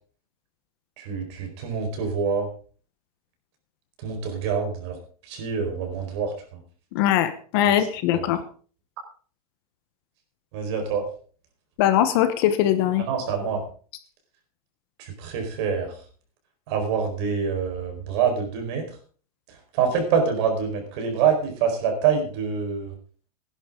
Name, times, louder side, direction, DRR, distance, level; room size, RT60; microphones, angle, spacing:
voice 1, 1.0-2.5 4.0-5.0 5.3-6.3 8.1-8.2 10.5-11.1 13.0-13.6 15.0-15.9 16.7-18.8 19.7-22.9, right 6 dB, 45° right, 3 dB, 4.5 m, -25 dB
voice 2, 6.9-8.4 11.8-13.0, left 11 dB, 40° left, 11 dB, 1.0 m, -21 dB
17.0 x 11.0 x 3.8 m, 0.42 s
supercardioid pair, 175°, 19 cm